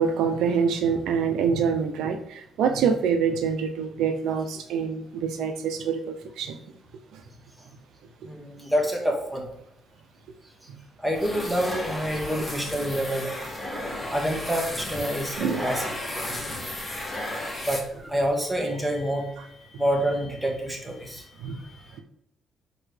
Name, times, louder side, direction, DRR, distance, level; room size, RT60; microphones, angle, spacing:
voice 1, 0.0-6.6 15.4-15.7 21.4-21.6, right 6 dB, 85° right, 7 dB, 0.7 m, -25 dB
voice 2, 8.2-9.5 11.0-13.3 14.1-15.9 16.2-16.6 17.6-21.8, equal, 5° right, 0 dB, 1.9 m, -28 dB
sound 1, 11.1-18.3, left 1 dB, 10° left, 2.2 m, -34 dB
7.0 x 4.5 x 3.4 m, 0.78 s
cardioid pair, 90°, 0 cm